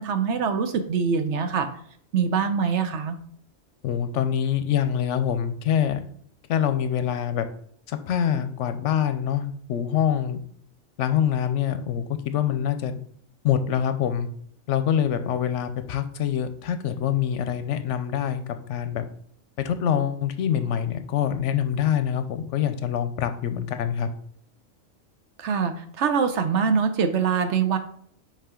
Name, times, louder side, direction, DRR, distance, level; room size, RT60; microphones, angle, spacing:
voice 1, 0.0-1.7 2.1-3.2 25.4-27.8, right 6 dB, 65° right, 8 dB, 1.0 m, -24 dB
voice 2, 3.8-6.0 6.5-7.5 7.9-10.4 11.0-13.0 13.4-14.3 14.7-18.4 18.7-19.0 19.6-24.1, left 9 dB, 75° left, 10 dB, 0.9 m, -25 dB
5.6 x 5.0 x 3.6 m, 0.63 s
omnidirectional pair, 1.3 m